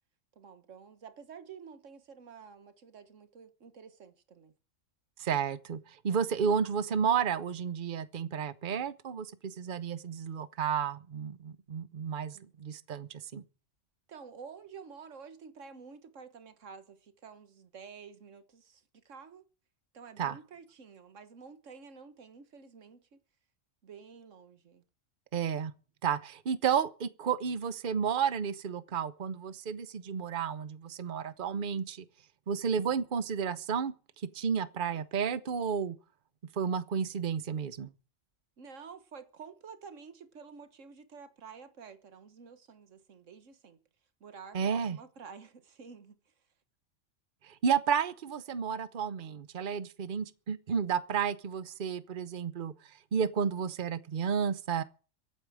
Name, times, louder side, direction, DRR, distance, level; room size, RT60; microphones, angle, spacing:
voice 1, 0.3-4.5 12.3-12.5 14.1-19.4 19.9-23.2 23.8-24.8 38.6-43.8 44.2-46.2, right 6 dB, 70° right, 1.7 m, -50 dB
voice 2, 5.2-13.4 20.2-20.4 25.3-25.7 26.0-32.0 32.5-33.9 34.3-36.0 36.6-37.9 44.5-45.0 47.4-52.7 53.1-54.8, right 7 dB, 45° right, 1.0 m, -32 dB
23.5 x 9.1 x 4.9 m
omnidirectional pair, 1.3 m